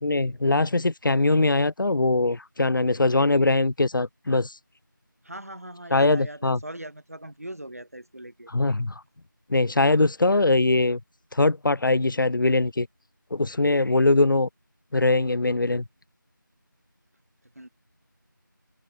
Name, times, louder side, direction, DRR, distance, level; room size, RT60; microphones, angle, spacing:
voice 1, 0.0-4.5 5.9-6.6 8.5-8.9 9.5-11.0 11.3-12.9 13.3-14.5 14.9-15.8, left 2 dB, 70° left, 0.5 m, -22 dB
voice 2, 5.2-8.5 17.5-17.7, right 1 dB, 45° right, 0.7 m, -40 dB
figure-of-eight pair, 180°, 11 cm